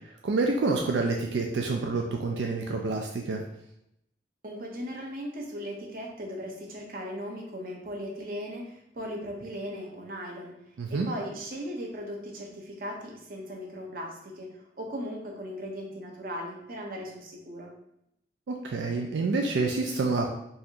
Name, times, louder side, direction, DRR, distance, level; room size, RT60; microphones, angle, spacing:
voice 1, 0.2-3.4 10.8-11.1 18.5-20.3, right 3 dB, 85° right, 2 dB, 0.4 m, -28 dB
voice 2, 4.4-10.6 10.9-17.7, equal, 50° right, 0 dB, 0.7 m, -38 dB
4.1 x 2.4 x 2.8 m, 0.80 s
head